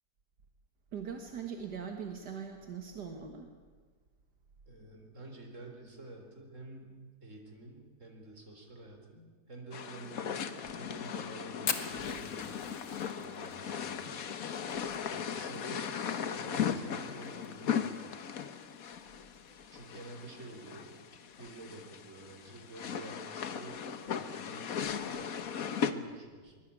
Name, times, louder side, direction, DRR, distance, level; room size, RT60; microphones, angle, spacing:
voice 1, 0.9-3.5, right 6 dB, 75° right, 4 dB, 2.2 m, -41 dB
voice 2, 4.7-12.6 13.2-14.3 15.1-18.1 19.7-21.0 21.4-26.6, right 2 dB, 45° right, 3 dB, 4.3 m, -50 dB
sound 1, 9.7-25.9, left 7 dB, 60° left, 1.5 m, -37 dB
Fire, 11.7-16.2 16.4-16.5 16.8-16.9 17.3-17.7 18.2-18.3 19.3-19.5, left 6 dB, 85° left, 2.1 m, -39 dB
23.5 x 21.5 x 8.6 m, 1.5 s
omnidirectional pair, 1.8 m